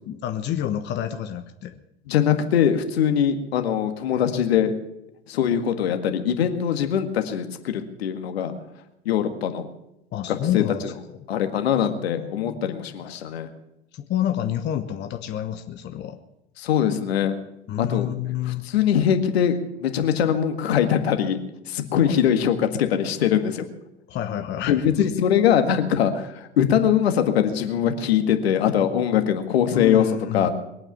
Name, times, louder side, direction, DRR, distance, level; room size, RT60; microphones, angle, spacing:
voice 1, 0.1-1.8 4.1-4.4 10.1-10.9 12.0-13.0 13.9-16.2 17.7-18.7 22.1-22.2 24.1-25.1 29.7-30.5, left 11 dB, 30° left, 7 dB, 1.1 m, -29 dB
voice 2, 2.1-4.7 5.3-8.5 9.1-9.7 10.3-10.9 11.3-13.5 16.6-17.3 17.8-18.1 18.5-21.4 21.7-23.7 24.7-30.1 30.3-30.5, left 9 dB, 65° left, 7 dB, 1.9 m, -22 dB
22.0 x 8.9 x 7.0 m, 0.87 s
figure-of-eight pair, 85°, 34 cm